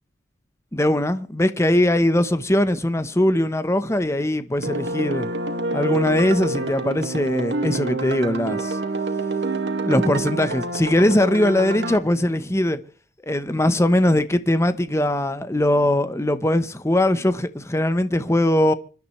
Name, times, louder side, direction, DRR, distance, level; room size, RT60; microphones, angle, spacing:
voice 1, 0.7-5.3 5.7-8.8 9.8-12.8 13.2-18.7, left 1 dB, 15° left, 1.0 m, -21 dB
sound 1, 4.6-12.0, right 2 dB, 85° right, 2.0 m, -27 dB
26.0 x 12.0 x 3.2 m
head